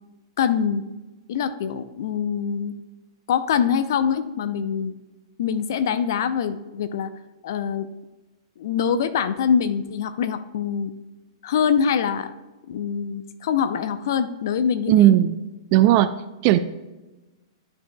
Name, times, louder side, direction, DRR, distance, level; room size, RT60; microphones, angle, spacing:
voice 1, 0.4-0.8 1.3-2.7 3.3-4.9 5.4-7.1 7.4-7.9 8.6-10.9 11.4-12.3 12.7-15.1, left 7 dB, 55° left, 12 dB, 0.5 m, -24 dB
voice 2, 14.9-15.4 15.7-16.1 16.4-16.6, right 13 dB, 40° right, 12 dB, 0.4 m, -16 dB
12.5 x 5.3 x 2.2 m, 1.1 s
figure-of-eight pair, 105°, 2 cm